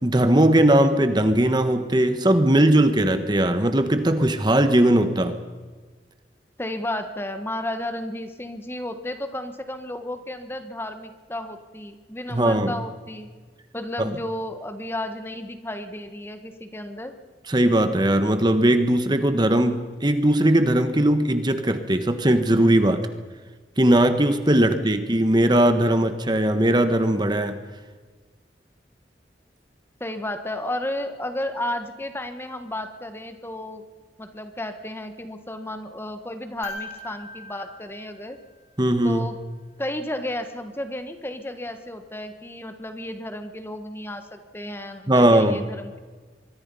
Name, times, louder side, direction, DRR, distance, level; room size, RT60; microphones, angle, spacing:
voice 1, 0.0-5.4 12.3-12.7 14.0-14.1 17.5-23.1 23.8-27.6 38.8-39.3 45.1-45.6, right 1 dB, 25° right, 9 dB, 1.3 m, -19 dB
voice 2, 6.6-13.3 13.7-17.1 24.6-24.8 30.0-33.8 34.2-38.4 39.0-39.4 39.8-46.0, left 1 dB, 15° left, 8 dB, 1.4 m, -33 dB
sound 1, 36.6-38.9 41.0-41.1, left 3 dB, 35° left, 3.7 m, -40 dB
25.0 x 22.5 x 5.5 m, 1.4 s
head